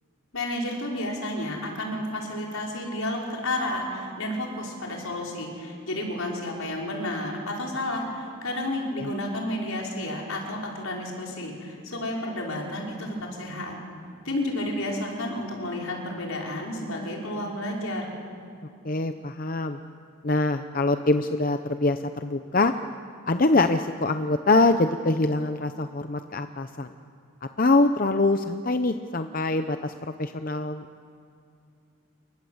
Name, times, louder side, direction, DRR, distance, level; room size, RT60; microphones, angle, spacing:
voice 1, 0.3-13.8 14.2-18.1, left 1 dB, 75° left, -1 dB, 5.5 m, -31 dB
voice 2, 18.8-19.8 20.2-22.7 23.3-26.9 27.6-29.9 30.2-30.9, left 2 dB, 40° left, 8 dB, 0.8 m, -24 dB
29.0 x 24.0 x 8.0 m, 2.6 s
head